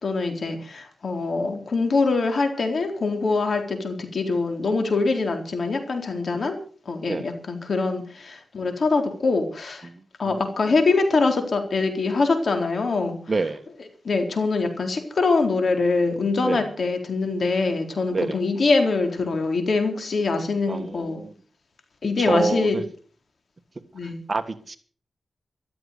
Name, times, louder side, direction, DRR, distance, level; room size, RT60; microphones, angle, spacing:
voice 1, 0.0-6.6 6.9-9.9 10.2-13.2 14.0-21.2 22.0-22.8 23.9-24.2, left 3 dB, 60° left, 5 dB, 4.1 m, -24 dB
voice 2, 13.3-13.6 16.4-16.7 18.1-18.4 20.7-21.3 22.2-22.8 24.0-24.8, right 3 dB, 40° right, 10 dB, 1.7 m, -27 dB
14.0 x 13.0 x 6.8 m, 0.43 s
cardioid pair, 80°, 0 cm